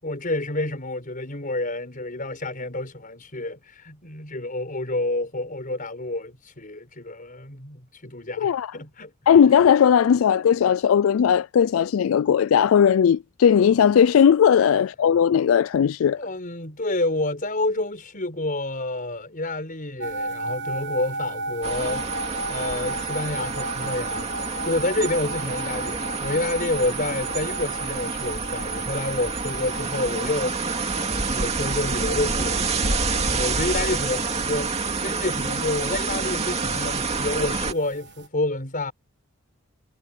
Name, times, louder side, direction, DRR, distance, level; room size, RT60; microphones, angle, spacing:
voice 1, 0.0-9.1 14.6-14.7 16.2-22.1 22.5-24.3 24.6-30.6 30.9-38.9, left 2 dB, 45° left, 5.6 m, -29 dB
voice 2, 8.4-8.7 9.3-16.2, left 8 dB, 80° left, 0.3 m, -18 dB
sound 1, 20.0-38.3, right 2 dB, 60° right, 1.4 m, -36 dB
sound 2, 21.6-37.7, right 4 dB, 30° right, 2.3 m, -28 dB
head